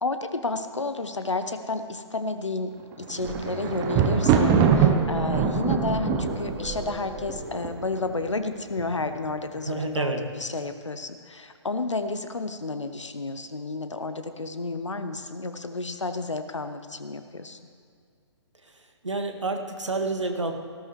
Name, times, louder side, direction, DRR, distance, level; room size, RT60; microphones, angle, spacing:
voice 1, 0.0-17.6, left 3 dB, 80° left, 9 dB, 0.9 m, -31 dB
Thunder, 2.9-8.1 8.8-9.3 9.6-9.7, right 6 dB, 20° right, 1.0 m, -23 dB
sound 1, 3.1-8.5, right 3 dB, 50° right, 2.1 m, -36 dB
voice 2, 9.6-10.2 18.6-18.7 19.0-20.5, right 3 dB, 80° right, 4 dB, 1.7 m, -29 dB
18.5 x 14.0 x 3.2 m, 2.2 s
figure-of-eight pair, 130°, 15 cm